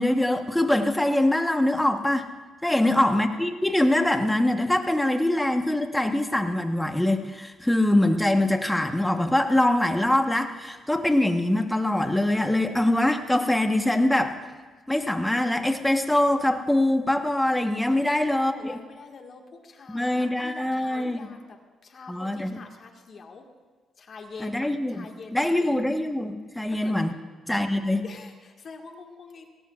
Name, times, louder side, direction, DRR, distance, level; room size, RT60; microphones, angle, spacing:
voice 1, 0.0-2.3 2.6-14.4 14.9-18.8 19.9-21.2 22.1-22.6 24.4-25.1 25.3-27.1 27.5-28.0, left 1 dB, 5° left, 5 dB, 1.2 m, -23 dB
voice 2, 2.6-3.1 14.8-14.9 17.9-21.6 21.8-23.4 24.0-25.9 26.7-27.0 28.0-29.5, left 4 dB, 50° left, 3 dB, 1.8 m, -45 dB
20.0 x 17.5 x 2.5 m, 1.3 s
cardioid pair, 90°, 0 cm